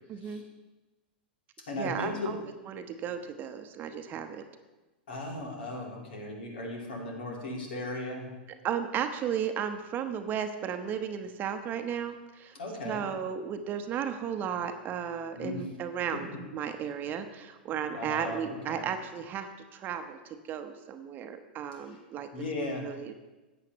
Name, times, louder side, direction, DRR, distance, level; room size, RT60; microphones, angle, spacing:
voice 1, 0.1-0.4 1.8-2.4 2.7-4.4 8.6-12.6 12.8-22.3 22.8-23.1, right 8 dB, 35° right, 7 dB, 0.8 m, -34 dB
voice 2, 1.7-2.4 5.1-8.3 12.5-13.0 15.4-15.7 16.1-16.4 17.9-18.9 22.3-22.9, left 2 dB, 75° left, -1 dB, 2.7 m, -36 dB
14.0 x 8.7 x 3.1 m, 1.1 s
hypercardioid pair, 100°, 5 cm